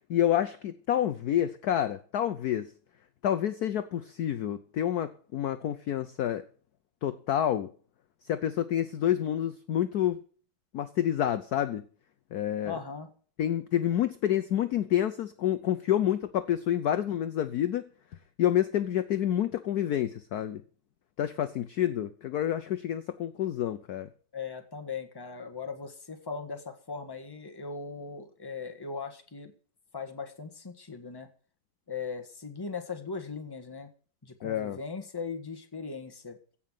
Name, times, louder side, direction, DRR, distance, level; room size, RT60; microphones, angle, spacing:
voice 1, 0.1-2.7 3.2-6.4 7.0-7.7 8.3-10.2 10.7-11.8 12.3-12.8 13.4-17.9 18.4-20.6 21.2-24.1 34.4-34.8, left 11 dB, 65° left, 11 dB, 1.1 m, -28 dB
voice 2, 12.6-13.1 24.3-29.5 29.9-31.3 31.9-33.9 34.2-36.4, left 5 dB, 15° left, 5 dB, 1.3 m, -39 dB
16.0 x 5.8 x 9.0 m, 0.42 s
omnidirectional pair, 2.2 m